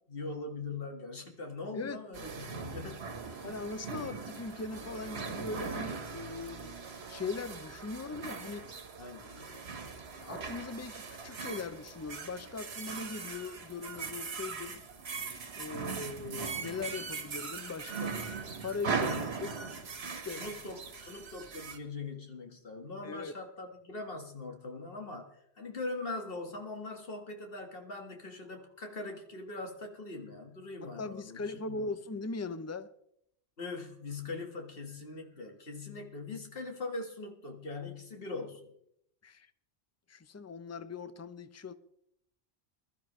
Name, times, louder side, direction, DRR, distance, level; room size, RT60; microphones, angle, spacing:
voice 1, 0.1-3.5 9.0-9.6 20.2-31.9 33.6-38.7, left 3 dB, 60° left, 1.9 m, -42 dB
early morning passerby medina marrakesh, 2.1-21.8, right 5 dB, 75° right, 1.5 m, -40 dB
voice 2, 3.4-6.8 7.1-8.7 10.2-14.8 15.6-18.2 18.6-19.6 20.2-20.4 23.0-23.3 30.8-32.9 39.2-39.5 40.1-41.7, left 4 dB, 20° left, 0.4 m, -40 dB
21.5 x 12.5 x 3.1 m
omnidirectional pair, 1.1 m